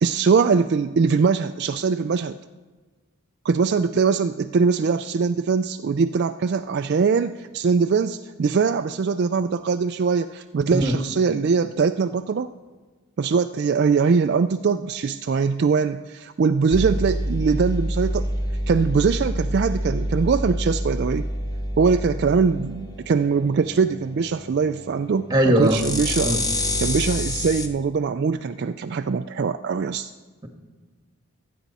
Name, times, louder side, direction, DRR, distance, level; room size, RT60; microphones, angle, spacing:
voice 1, 0.0-2.4 3.4-12.5 13.2-18.3 18.7-21.3 21.8-26.3 26.8-30.1, right 5 dB, 50° right, 8 dB, 0.3 m, -22 dB
sound 1, 16.7-27.7, equal, 15° left, 0.8 m, -28 dB
voice 2, 25.3-25.8 26.2-26.4, right 1 dB, 15° right, 3 dB, 1.6 m, -19 dB
27.5 x 9.3 x 4.1 m, 1.4 s
head